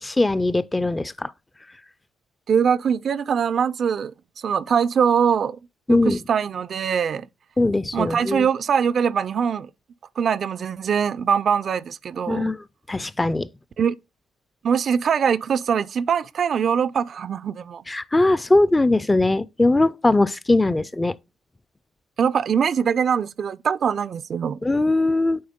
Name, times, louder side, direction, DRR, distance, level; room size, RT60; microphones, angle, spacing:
voice 1, 0.0-1.3 5.9-6.2 7.6-8.5 12.3-13.5 17.9-21.2 24.6-25.4, left 2 dB, 15° left, 0.4 m, -20 dB
voice 2, 2.5-4.1 4.4-5.6 5.9-7.3 7.9-9.7 10.2-12.5 13.8-13.9 14.6-17.8 22.2-24.6, right 7 dB, 55° right, 0.3 m, -22 dB
8.6 x 3.9 x 3.6 m
cardioid pair, 90°, 0 cm